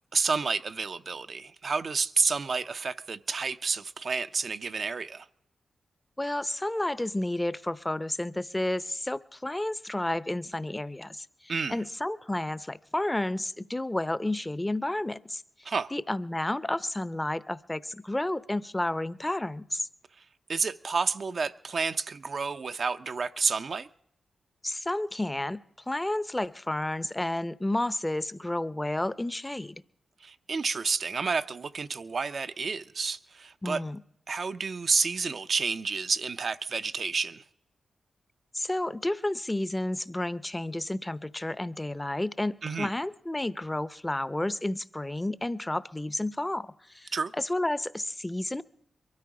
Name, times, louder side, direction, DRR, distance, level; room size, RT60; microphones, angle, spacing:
voice 1, 0.1-5.3 11.5-11.8 15.6-15.9 20.5-23.9 30.2-33.8 34.3-37.4 42.6-42.9 47.1-47.3, right 4 dB, 60° right, 0.6 m, -30 dB
voice 2, 6.2-15.4 15.9-19.9 24.6-25.6 25.9-29.8 33.6-34.0 38.5-48.6, left 1 dB, 15° left, 0.7 m, -31 dB
23.0 x 13.0 x 4.9 m
cardioid pair, 50°, 0 cm